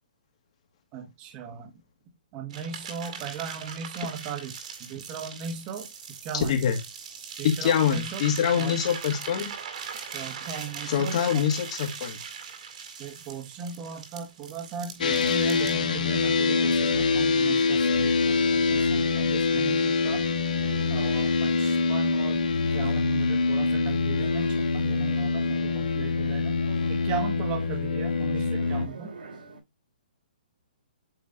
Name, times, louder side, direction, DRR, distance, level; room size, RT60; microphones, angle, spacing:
voice 1, 0.9-1.7 2.3-6.6 7.4-8.2 8.5-8.8 10.1-11.4 13.0-20.2 20.9-26.6 26.9-29.1, right 6 dB, 25° right, 1.3 m, -37 dB
sound 1, 2.5-15.7, right 6 dB, 55° right, 2.1 m, -40 dB
voice 2, 7.4-9.5 10.9-12.2, left 8 dB, 45° left, 2.0 m, -25 dB
sound 2, 15.0-28.9, left 4 dB, 65° left, 1.3 m, -25 dB
sound 3, 16.2-29.6, right 3 dB, 85° right, 3.2 m, -45 dB
8.7 x 3.1 x 3.9 m
hypercardioid pair, 155°, 5 cm